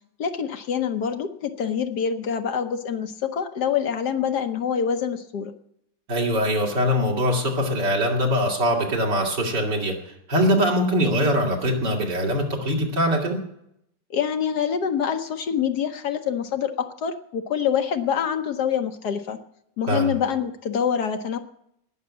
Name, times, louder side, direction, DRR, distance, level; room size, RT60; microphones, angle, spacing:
voice 1, 0.2-5.5 14.1-19.4 19.8-21.4, left 7 dB, 65° left, 7 dB, 1.3 m, -26 dB
voice 2, 6.1-13.4 19.9-20.1, equal, 65° right, 0 dB, 3.2 m, -22 dB
19.0 x 6.5 x 8.4 m, 0.77 s
omnidirectional pair, 2.0 m